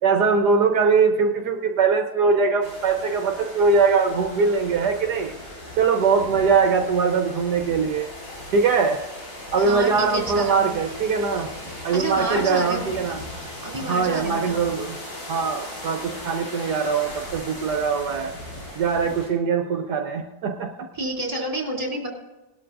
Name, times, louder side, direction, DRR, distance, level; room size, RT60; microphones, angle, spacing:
voice 1, 0.0-5.3 5.8-8.1 8.5-9.0 9.5-11.5 11.8-13.2 13.8-15.0 15.3-18.3 18.7-20.7, right 5 dB, 75° right, 2 dB, 1.6 m, -21 dB
sound 1, 2.6-19.3, left 1 dB, 65° left, 5.2 m, -38 dB
voice 2, 9.6-10.7 11.9-12.9 13.6-14.6 20.9-22.1, right 2 dB, 20° right, -2 dB, 3.5 m, -29 dB
19.5 x 12.5 x 2.6 m, 1.1 s
omnidirectional pair, 1.8 m